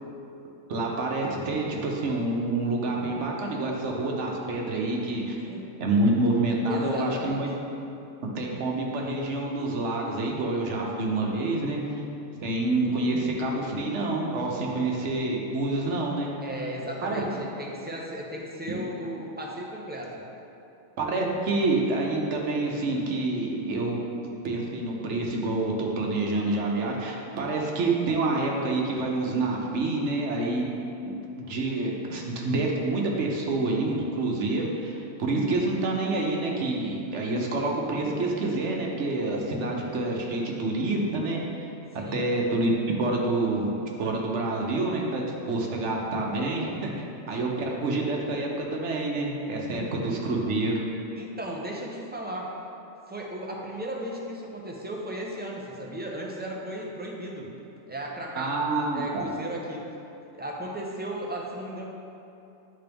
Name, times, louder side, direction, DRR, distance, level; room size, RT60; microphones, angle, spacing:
voice 1, 0.7-5.4 5.8-7.5 8.3-11.8 12.4-16.3 17.0-17.2 18.7-18.8 21.0-24.0 24.4-30.7 31.0-31.1 31.4-41.4 42.1-43.7 44.0-46.9 47.3-50.7 58.4-59.3, right 2 dB, 75° right, -1 dB, 1.2 m, -27 dB
voice 2, 5.4-5.7 6.7-7.5 16.4-20.3 42.0-42.4 47.4-47.5 49.7-49.9 51.1-52.5 53.1-57.5 57.9-59.8 60.3-61.9, equal, 10° right, -2 dB, 0.6 m, -36 dB
10.0 x 3.7 x 3.5 m, 2.8 s
omnidirectional pair, 1.2 m